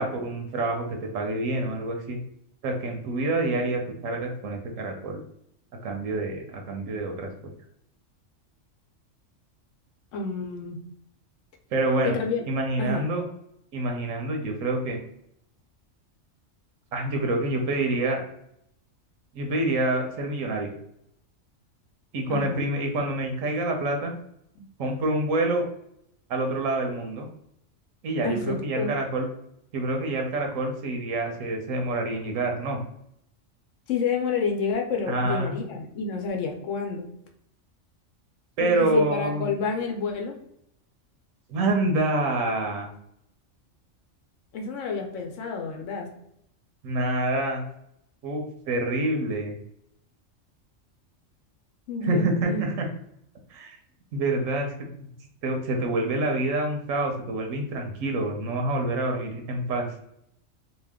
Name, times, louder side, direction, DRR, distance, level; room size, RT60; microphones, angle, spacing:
voice 1, 0.0-2.2 2.6-5.2 5.8-7.5 11.7-12.2 12.5-13.2 13.7-15.0 16.9-18.2 19.3-20.7 22.1-24.1 24.8-25.7 26.3-27.3 28.0-29.3 29.7-32.8 35.1-35.6 38.6-39.5 41.5-42.9 46.8-47.6 48.2-49.6 52.0-52.9 53.5-53.8 54.1-54.7 55.4-59.9, right 2 dB, 85° right, 3 dB, 1.0 m, -27 dB
voice 2, 10.1-10.8 12.0-12.4 12.8-13.1 22.3-22.6 24.6-24.7 28.2-28.9 33.9-37.1 38.6-40.4 44.5-46.1 51.9-52.7, left 4 dB, 75° left, 2 dB, 0.9 m, -29 dB
2.8 x 2.2 x 3.4 m, 0.74 s
omnidirectional pair, 1.3 m